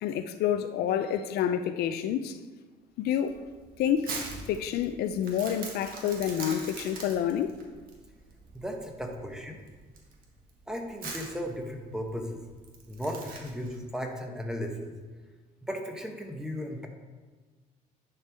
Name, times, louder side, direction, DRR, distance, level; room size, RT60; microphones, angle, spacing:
voice 1, 0.0-2.4 3.0-3.4 3.8-4.1 4.5-7.6, left 9 dB, 70° left, 10 dB, 0.4 m, -28 dB
Crumpling crinkling, 3.2-13.8, right 4 dB, 60° right, 1.5 m, -42 dB
voice 2, 8.5-9.6 10.7-12.4 12.9-14.9 15.6-16.9, equal, 5° right, 2 dB, 1.0 m, -36 dB
10.5 x 4.6 x 3.5 m, 1.3 s
cardioid pair, 110°, 17 cm